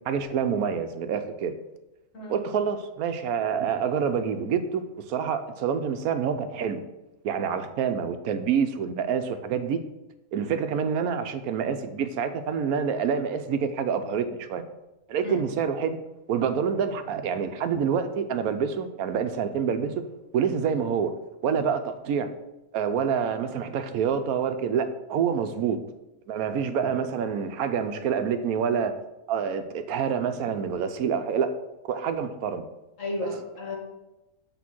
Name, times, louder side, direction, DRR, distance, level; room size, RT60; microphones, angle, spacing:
voice 1, 0.0-1.5 2.3-6.8 7.2-9.8 10.3-14.7 15.1-16.0 16.3-20.0 20.3-21.1 21.4-22.3 22.7-25.8 26.3-28.9 29.3-31.5 31.8-32.6 33.2-33.4, right 7 dB, 80° right, 9 dB, 1.1 m, -27 dB
voice 2, 33.0-33.8, left 2 dB, 60° left, -1 dB, 2.2 m, -33 dB
8.4 x 3.6 x 6.1 m, 1.0 s
omnidirectional pair, 1.5 m